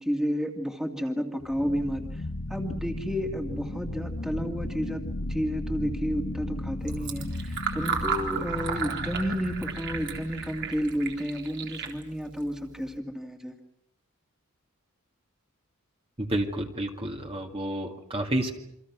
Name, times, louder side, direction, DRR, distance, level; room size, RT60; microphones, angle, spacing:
voice 1, 0.0-2.2 2.5-13.6, equal, 5° right, 3 dB, 2.4 m, -31 dB
sound 1, 1.4-11.2, left 1 dB, 65° left, 1.3 m, -36 dB
Fill (with liquid), 6.8-13.0, right 6 dB, 60° right, 3.8 m, -35 dB
voice 2, 16.2-18.5, right 1 dB, 25° right, 2 dB, 2.2 m, -30 dB
28.5 x 25.0 x 6.2 m, 0.76 s
head